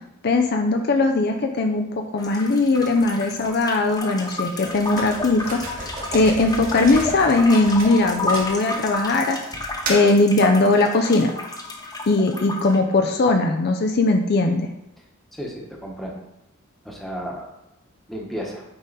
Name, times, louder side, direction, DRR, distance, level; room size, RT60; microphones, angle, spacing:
voice 1, 0.2-9.4 9.7-11.3 12.1-14.7, left 2 dB, 50° left, 3 dB, 0.5 m, -19 dB
sound 1, 2.2-12.8, left 2 dB, 20° left, 0.9 m, -32 dB
sound 2, 4.7-9.0 9.5-10.2, right 2 dB, 40° right, 2.0 m, -33 dB
voice 2, 15.3-16.1 16.8-17.5 18.1-18.6, equal, ahead, -2 dB, 1.2 m, -33 dB
8.7 x 3.8 x 4.1 m, 0.86 s
head